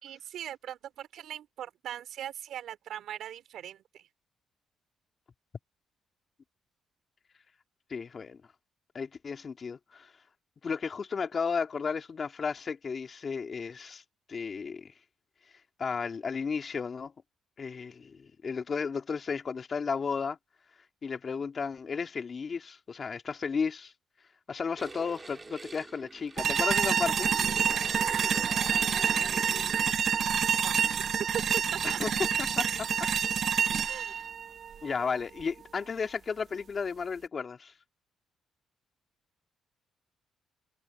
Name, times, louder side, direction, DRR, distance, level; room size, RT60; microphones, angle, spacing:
voice 1, 0.0-4.0 30.6-30.8 31.7-32.0 33.9-34.3, right 11 dB, 75° right, 4.1 m, -41 dB
voice 2, 7.9-8.4 8.9-10.1 10.6-14.0 14.3-14.9 15.8-17.1 17.6-20.4 21.0-23.9 24.5-27.3 31.8-32.1 32.4-32.9 33.7-33.8 34.8-37.7, left 5 dB, 40° left, 2.7 m, -33 dB
sound 1, 24.8-29.9, right 3 dB, 25° right, 2.3 m, -45 dB
sound 2, 26.4-35.4, right 7 dB, 55° right, 0.5 m, -28 dB
cardioid pair, 90°, 0 cm